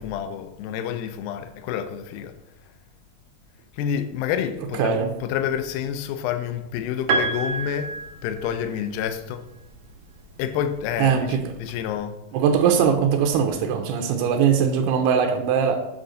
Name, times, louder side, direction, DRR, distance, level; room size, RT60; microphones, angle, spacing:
voice 1, 0.0-2.3 3.7-8.0 8.2-9.5 10.4-12.2, left 9 dB, 80° left, 2.3 m, -28 dB
voice 2, 4.8-5.1 11.0-11.4 12.3-15.8, right 7 dB, 85° right, 2.7 m, -20 dB
Piano, 7.1-9.1 10.4-10.5, right 3 dB, 65° right, 2.1 m, -27 dB
7.9 x 3.8 x 6.3 m
omnidirectional pair, 4.6 m